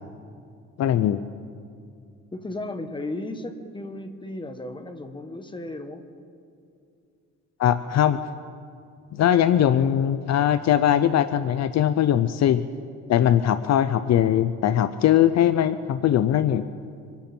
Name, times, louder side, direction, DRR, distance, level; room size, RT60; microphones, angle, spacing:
voice 1, 0.8-1.2 7.6-8.2 9.1-12.6 13.1-16.6, left 10 dB, 60° left, 12 dB, 0.6 m, -20 dB
voice 2, 2.3-6.0, left 2 dB, 15° left, 7 dB, 1.4 m, -35 dB
26.0 x 11.0 x 4.4 m, 2.4 s
cardioid pair, 90°, 30 cm